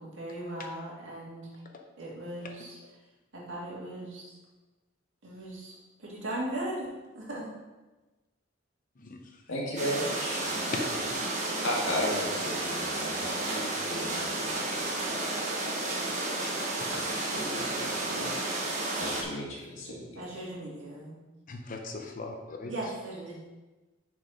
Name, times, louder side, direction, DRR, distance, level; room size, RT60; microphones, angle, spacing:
voice 1, 0.0-1.5 2.0-2.8 3.3-4.3 5.2-5.7 6.0-7.5 20.1-21.2 22.6-23.4, right 1 dB, 65° right, -5 dB, 2.3 m, -38 dB
voice 2, 9.0-9.4 10.7-10.8 16.4-16.5 16.8-17.1 21.5-22.7, left 3 dB, 40° left, 3 dB, 0.7 m, -39 dB
voice 3, 9.5-10.5 11.6-14.5 14.9-15.0 16.9-17.0 17.3-20.2, left 1 dB, 65° left, -3 dB, 2.0 m, -35 dB
sound 1, 9.8-19.2, right 2 dB, 35° right, 1.3 m, -32 dB
6.4 x 4.8 x 5.2 m, 1.1 s
head